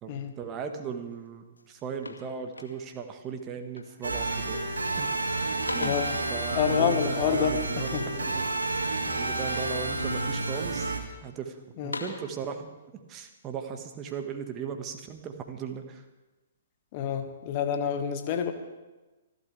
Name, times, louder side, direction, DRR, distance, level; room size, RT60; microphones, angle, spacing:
voice 1, 0.0-4.6 5.0-5.2 5.7-6.0 6.3-8.5 9.1-10.9 11.2-16.0, right 6 dB, 25° right, 5 dB, 1.6 m, -37 dB
sound 1, 1.1-1.3 1.6-3.1 3.7-4.1 4.4-4.9 5.2-6.3 7.8-9.0 9.5-10.1 10.6-11.3 11.7-12.4, left 3 dB, 80° left, 2.3 m, -41 dB
sound 2, 4.0-11.0, right 2 dB, 75° right, 2.5 m, -30 dB
voice 2, 5.8-6.2 6.6-8.0 11.8-12.0 16.9-18.5, left 7 dB, 40° left, 6 dB, 1.7 m, -28 dB
27.0 x 12.5 x 3.5 m, 1.1 s
figure-of-eight pair, 120°, 0 cm